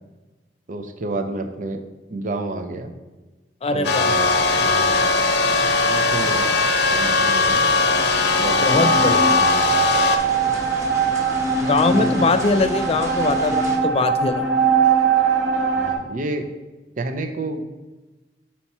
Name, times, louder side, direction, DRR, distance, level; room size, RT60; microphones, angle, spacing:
voice 1, 0.7-1.8 2.1-2.9 3.7-4.3 4.6-5.0 5.8-6.6 6.9-7.6 8.4-9.9 10.5-10.8 11.9-12.3 15.8-16.5 17.0-17.6, right 2 dB, 45° right, 7 dB, 0.5 m, -30 dB
voice 2, 3.6-4.1 8.6-9.2 11.6-14.5, left 3 dB, 35° left, 9 dB, 0.4 m, -21 dB
sound 1, 3.8-10.2, left 3 dB, 65° left, 0.7 m, -19 dB
sound 2, 4.1-13.8, right 1 dB, 20° right, 1.0 m, -33 dB
sound 3, 7.9-15.9, right 5 dB, 85° right, 1.2 m, -22 dB
5.9 x 4.4 x 4.2 m, 1.2 s
head